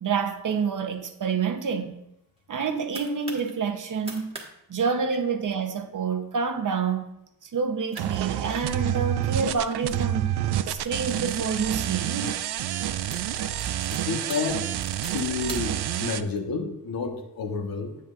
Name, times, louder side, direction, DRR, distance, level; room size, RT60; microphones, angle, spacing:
voice 1, 0.0-2.0 2.5-4.3 4.7-7.1 7.4-10.3 10.7-12.3, right 5 dB, 55° right, 1.0 m, -28 dB
sound 1, 2.4-3.5 3.9-4.5 4.7-4.8 5.2-5.5 6.1-6.3 6.8-6.9 7.6-7.7 7.9-9.1 9.7-11.6 12.3-12.5 12.8-16.0, right 2 dB, 15° right, 1.6 m, -44 dB
sound 2, 8.0-16.2, right 12 dB, 85° right, 0.5 m, -28 dB
voice 2, 14.1-14.7 15.1-18.0, left 4 dB, 60° left, 1.2 m, -30 dB
9.1 x 8.4 x 2.5 m
wide cardioid pair, 115°, 39 cm